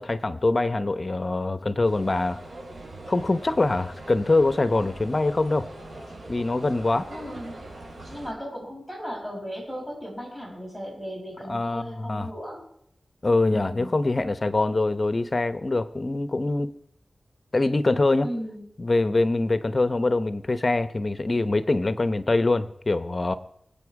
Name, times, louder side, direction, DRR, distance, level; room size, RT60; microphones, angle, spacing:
voice 1, 0.0-2.4 3.1-5.7 6.3-7.1 11.5-12.3 13.2-16.7 17.5-18.3 18.8-23.3, left 2 dB, 40° left, 12 dB, 0.9 m, -24 dB
sound 1, 1.8-8.3, right 1 dB, 75° right, 5.9 m, -42 dB
voice 2, 7.1-7.6 8.1-12.6 13.5-13.9 18.2-18.6, equal, 10° right, -3 dB, 6.9 m, -36 dB
23.5 x 8.8 x 4.8 m, 0.71 s
wide cardioid pair, 75°, 0 cm